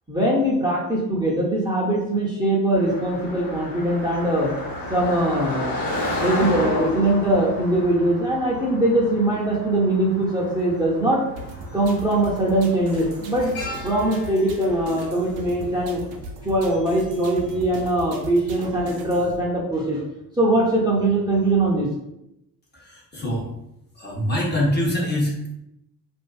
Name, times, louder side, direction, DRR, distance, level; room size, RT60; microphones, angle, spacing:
voice 1, 0.1-4.5 4.9-5.8 6.2-11.2 11.7-13.5 13.8-16.0 16.4-20.0 20.4-21.9, right 1 dB, 10° right, -5 dB, 0.7 m, -21 dB
Car passing by, 2.7-13.9, left 1 dB, 75° left, 0.8 m, -32 dB
sound 1, 10.4-10.5 11.7-12.0 12.3-16.6 16.9-17.0, left 2 dB, 60° left, 1.1 m, -39 dB
sound 2, 11.4-19.4, right 2 dB, 75° right, 0.5 m, -39 dB
voice 2, 22.7-23.5 23.9-25.5, left 1 dB, 20° left, -3 dB, 0.8 m, -24 dB
2.6 x 2.4 x 2.3 m, 0.84 s
hypercardioid pair, 45°, 47 cm